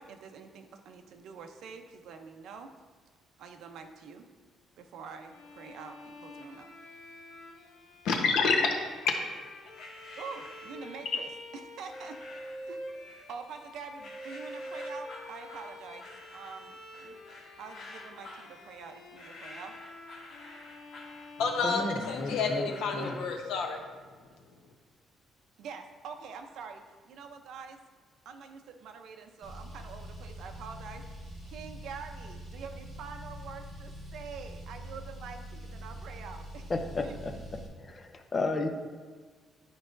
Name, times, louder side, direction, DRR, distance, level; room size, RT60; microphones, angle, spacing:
voice 1, 0.0-2.7 3.4-4.2 4.8-6.7 10.2-11.3 11.7-12.2 12.7-12.8 13.3-17.2 17.6-19.8 25.6-27.8 28.2-36.7 37.0-37.2, right 5 dB, 65° right, 6 dB, 0.6 m, -45 dB
Bowed string instrument, 5.3-22.5, left 1 dB, 65° left, 0.9 m, -47 dB
voice 2, 8.0-8.7 21.4-23.9, left 4 dB, 90° left, 2 dB, 1.0 m, -28 dB
sound 1, 9.8-11.1 11.9-12.7 13.1-13.7 14.0-23.3, left 2 dB, 50° left, 1.2 m, -50 dB
voice 3, 21.6-23.2 36.7-37.3 37.8-38.7, left 3 dB, 20° left, 5 dB, 0.5 m, -33 dB
Car, 29.4-37.7, equal, ahead, 1.3 m, -44 dB
11.0 x 4.7 x 2.6 m, 1.5 s
cardioid pair, 175°, 0 cm